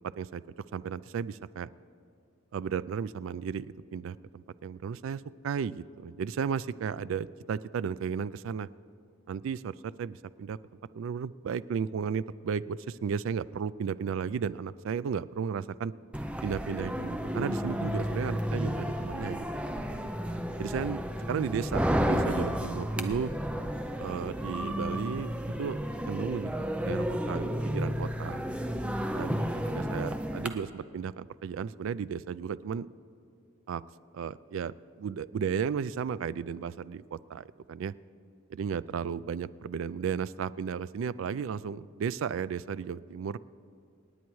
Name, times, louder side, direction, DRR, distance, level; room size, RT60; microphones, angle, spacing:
voice 1, 0.7-1.7 2.5-8.7 9.3-10.6 10.9-15.9 16.4-19.4 19.7-20.1 20.6-23.3 24.0-25.8 26.1-28.4 29.1-29.5 29.7-32.9 33.7-33.8 34.1-37.9 38.5-43.4, right 6 dB, 75° right, 17 dB, 0.3 m, -34 dB
sound 1, 16.1-30.5, equal, 5° right, 0.5 m, -32 dB
27.5 x 9.4 x 3.1 m, 2.5 s
head